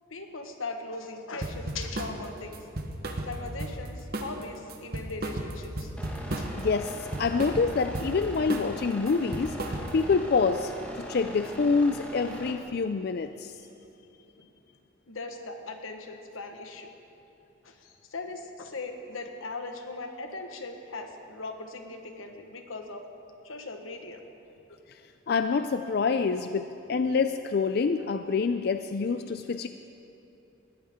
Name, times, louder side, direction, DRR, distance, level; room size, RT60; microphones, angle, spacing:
voice 1, 0.1-2.6 3.2-5.9 6.3-6.5 14.4-14.5 15.1-16.9 17.6-23.0 23.4-24.5, left 3 dB, 90° left, 5 dB, 1.3 m, -39 dB
sound 1, 1.4-2.2 2.5-3.9 4.1-4.4 4.7-6.6 6.9-8.1 8.5-8.8 9.1-10.1, right 1 dB, 50° right, 1.2 m, -34 dB
sound 2, 6.0-12.5, right 1 dB, 5° left, 1.5 m, -41 dB
voice 2, 6.6-9.6 9.9-13.6 25.3-29.7, left 4 dB, 50° left, 9 dB, 0.4 m, -26 dB
19.5 x 14.5 x 3.7 m, 2.9 s
head